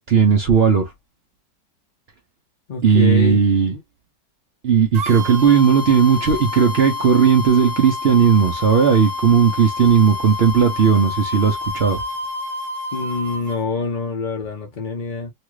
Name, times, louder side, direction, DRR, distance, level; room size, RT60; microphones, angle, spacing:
voice 1, 0.1-0.9 2.8-3.8 4.6-12.0, right 6 dB, 70° right, 0.6 m, -16 dB
voice 2, 2.7-3.4 12.9-15.3, left 3 dB, 55° left, 0.5 m, -25 dB
sound 1, 4.9-13.6, left 3 dB, 50° right, 1.1 m, -29 dB
3.1 x 2.4 x 3.1 m
omnidirectional pair, 1.9 m